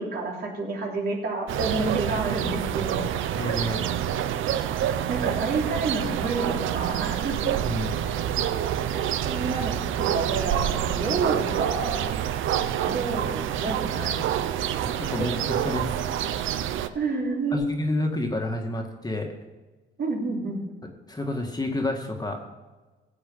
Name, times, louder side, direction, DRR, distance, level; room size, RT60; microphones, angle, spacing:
voice 1, 0.0-3.1 5.1-7.4 8.9-12.4 12.7-14.8 15.2-15.3 16.9-17.7 20.0-20.6, right 3 dB, 55° right, -1 dB, 3.4 m, -30 dB
sound 1, 1.5-16.9, right 10 dB, 80° right, 0.7 m, -27 dB
voice 2, 3.4-3.8 7.6-7.9 14.8-15.4 15.6-16.0 17.5-19.3 20.8-22.4, left 1 dB, 20° left, 3 dB, 1.8 m, -29 dB
15.5 x 7.8 x 5.5 m, 1.2 s
cardioid pair, 90°, 20 cm